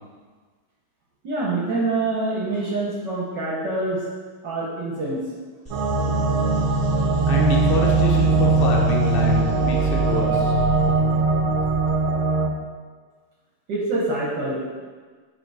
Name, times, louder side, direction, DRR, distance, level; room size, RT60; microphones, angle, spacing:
voice 1, 1.2-4.0 4.4-5.2 13.7-14.7, right 2 dB, 60° right, -5 dB, 1.5 m, -25 dB
sound 1, 5.6-12.2, right 2 dB, 5° left, 1.4 m, -26 dB
sound 2, 5.7-12.5, right 3 dB, 80° right, 1.5 m, -21 dB
voice 2, 7.3-10.6, left 2 dB, 50° left, -1 dB, 0.7 m, -27 dB
6.8 x 4.0 x 4.7 m, 1.5 s
omnidirectional pair, 2.3 m